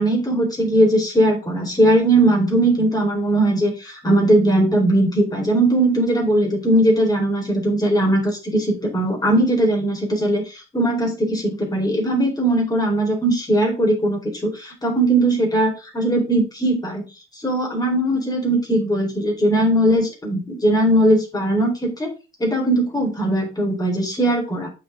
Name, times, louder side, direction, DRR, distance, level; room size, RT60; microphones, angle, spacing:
voice 1, 0.0-17.0 17.4-22.1 22.4-24.7, right 1 dB, 20° left, 0 dB, 4.5 m, -19 dB
8.7 x 6.2 x 3.7 m, 0.29 s
cardioid pair, 90°, 20 cm